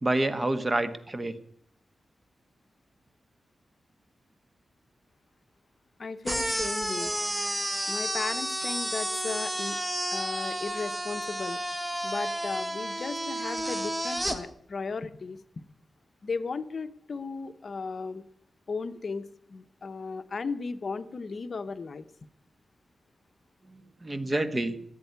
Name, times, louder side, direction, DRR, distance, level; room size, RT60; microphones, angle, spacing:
voice 1, 0.0-1.3 24.0-24.8, right 2 dB, 25° right, 11 dB, 1.3 m, -27 dB
voice 2, 6.0-7.1 7.9-9.8 10.1-11.6 12.0-15.4 16.2-18.2 18.7-22.0, left 4 dB, 50° left, 11 dB, 0.8 m, -35 dB
sound 1, 6.2-14.4, equal, 10° right, 1.7 m, -31 dB
15.5 x 8.2 x 9.3 m, 0.68 s
wide cardioid pair, 100°, 0 cm